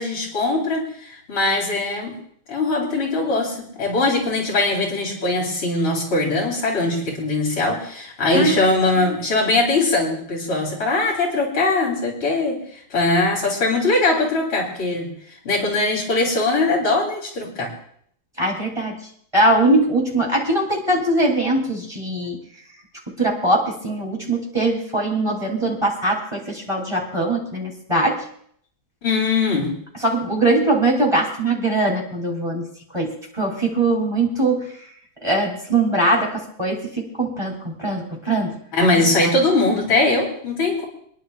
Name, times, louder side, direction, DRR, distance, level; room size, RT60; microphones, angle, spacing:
voice 1, 0.0-2.2 2.5-12.6 12.9-15.1 15.4-17.7 29.0-29.7 38.7-40.8, left 2 dB, 85° left, -1 dB, 4.2 m, -21 dB
voice 2, 18.4-19.0 19.3-22.4 23.2-28.2 30.0-34.7 35.2-38.6, right 2 dB, 15° right, -1 dB, 2.8 m, -21 dB
27.5 x 10.5 x 2.4 m, 0.64 s
omnidirectional pair, 2.2 m